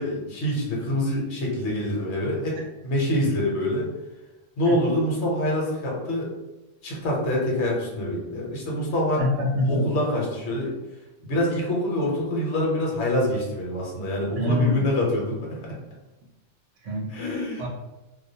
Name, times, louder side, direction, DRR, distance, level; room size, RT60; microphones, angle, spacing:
voice 1, 0.0-2.6 2.8-3.9 4.6-6.3 6.8-9.2 9.6-10.7 11.2-15.6 17.1-17.6, left 1 dB, 65° left, -2 dB, 1.0 m, -25 dB
voice 2, 9.2-9.8 14.4-14.9 16.8-17.1 17.6-17.7, left 2 dB, 75° right, -1 dB, 0.9 m, -24 dB
2.3 x 2.2 x 2.6 m, 1.0 s
omnidirectional pair, 1.3 m